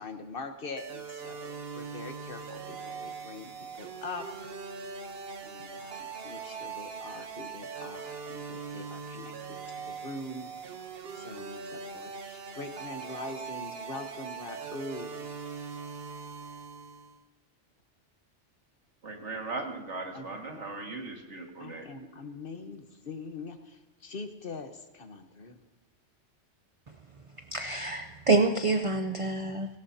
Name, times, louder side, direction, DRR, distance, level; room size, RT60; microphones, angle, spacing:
voice 1, 0.0-4.2 5.4-9.6 9.9-10.5 11.1-15.1 20.1-20.5 21.6-25.6, left 3 dB, 50° left, 7 dB, 1.3 m, -43 dB
sound 1, 0.8-17.2, right 5 dB, 55° right, 1.2 m, -41 dB
voice 2, 19.0-21.9, right 3 dB, 75° right, 1 dB, 2.3 m, -38 dB
voice 3, 27.5-29.7, right 3 dB, 35° right, 6 dB, 0.6 m, -27 dB
17.5 x 17.5 x 2.8 m, 1.2 s
omnidirectional pair, 1.2 m